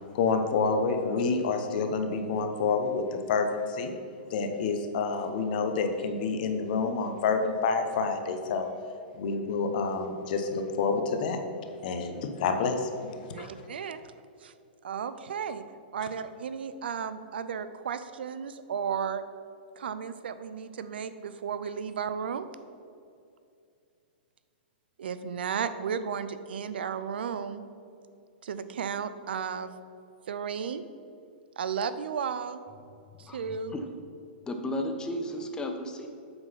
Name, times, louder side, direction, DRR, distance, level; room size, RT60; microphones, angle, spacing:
voice 1, 0.1-3.9 4.3-8.7 9.1-11.4 11.8-13.5, left 4 dB, 55° left, 6 dB, 0.9 m, -28 dB
voice 2, 13.3-14.0 14.8-15.6 15.9-19.2 19.8-22.5 25.0-27.6 28.4-29.7 30.3-30.8 31.6-32.6 33.3-33.8, right 7 dB, 80° right, 12 dB, 0.5 m, -34 dB
voice 3, 34.4-36.1, left 1 dB, 15° left, 4 dB, 0.7 m, -33 dB
7.8 x 3.9 x 5.7 m, 2.5 s
hypercardioid pair, 135°, 5 cm